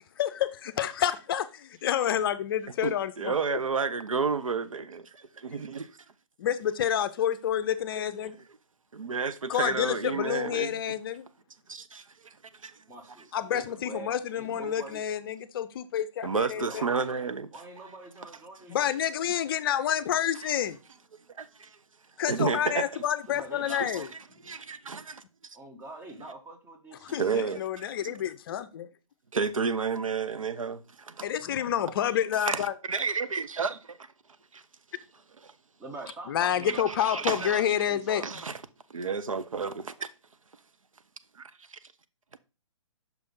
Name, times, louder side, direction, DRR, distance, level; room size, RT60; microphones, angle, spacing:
voice 1, 0.2-3.6 6.4-8.4 9.5-11.3 13.3-16.8 18.7-20.8 22.2-24.1 27.0-28.9 31.2-32.7 36.3-38.2, left 10 dB, 45° left, 0.5 m, -29 dB
voice 2, 2.8-5.9 8.2-8.3 8.9-10.8 11.7-12.3 12.6-12.7 16.2-17.5 21.4-21.7 22.3-23.0 23.6-24.1 24.5-25.2 27.1-28.1 29.3-31.3 32.3-34.1 34.5-34.6 35.4-35.5 36.7-37.6 38.2-38.6 38.9-40.1 41.4-41.8, right 5 dB, 90° right, 0.6 m, -31 dB
voice 3, 12.9-15.2 16.5-17.2 17.5-19.0 22.6-22.8 23.3-24.1 25.5-27.2 35.8-38.3, right 2 dB, 15° right, 1.0 m, -45 dB
6.1 x 3.4 x 5.3 m
hypercardioid pair, 135°, 17 cm